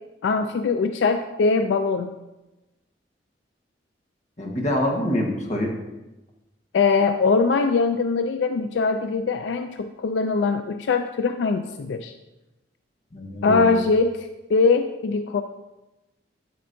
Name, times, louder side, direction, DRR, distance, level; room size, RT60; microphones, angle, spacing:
voice 1, 0.2-2.1 6.7-12.1 13.4-15.4, left 4 dB, 80° left, 8 dB, 0.4 m, -22 dB
voice 2, 4.4-5.7 13.1-13.7, left 1 dB, 40° left, 0 dB, 1.3 m, -25 dB
8.5 x 7.8 x 2.7 m, 1.0 s
head